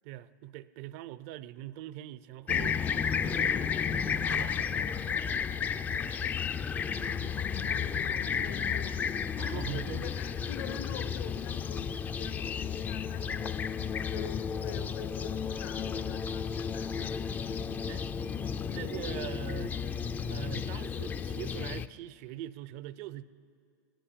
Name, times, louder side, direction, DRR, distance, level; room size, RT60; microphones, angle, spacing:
voice 1, 0.0-2.8 3.2-4.9 9.4-10.1 17.9-18.0 18.7-19.7 20.3-23.2, right 14 dB, 50° right, 16 dB, 0.5 m, -42 dB
Fixed-wing aircraft airplane, 2.5-21.9, left 7 dB, 15° left, 0.3 m, -32 dB
voice 2, 7.0-13.7 14.1-17.4 18.7-18.9, left 9 dB, 60° left, 13 dB, 0.7 m, -46 dB
16.5 x 10.5 x 8.5 m, 2.3 s
hypercardioid pair, 130°, 10 cm